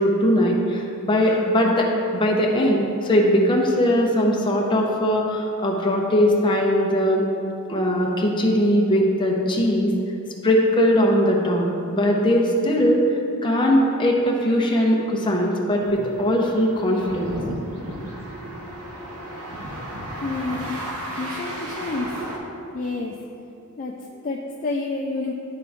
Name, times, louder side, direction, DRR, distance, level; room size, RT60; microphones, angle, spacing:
voice 1, 0.0-7.2 7.7-9.9 10.4-13.1 13.4-17.4, equal, 20° left, -2 dB, 0.8 m, -20 dB
sound 1, 15.8-22.4, right 1 dB, 75° right, 1.0 m, -34 dB
voice 2, 20.2-20.7 21.1-22.1 22.7-23.1 23.8-25.3, left 3 dB, 35° left, 0 dB, 0.4 m, -29 dB
11.0 x 3.8 x 3.5 m, 2.8 s
head